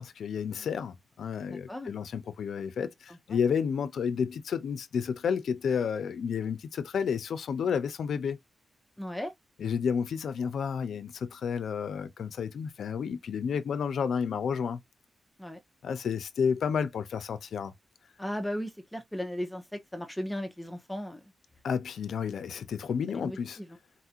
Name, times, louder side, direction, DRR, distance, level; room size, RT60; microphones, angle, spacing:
voice 1, 0.0-8.4 9.6-14.8 15.8-17.7 21.6-23.6, left 7 dB, 80° left, 0.5 m, -31 dB
voice 2, 1.5-1.9 3.1-3.2 9.0-9.3 15.4-15.6 18.2-21.2 23.1-23.7, equal, 5° left, 0.5 m, -36 dB
4.1 x 2.4 x 2.7 m
wide cardioid pair, 135°, 0 cm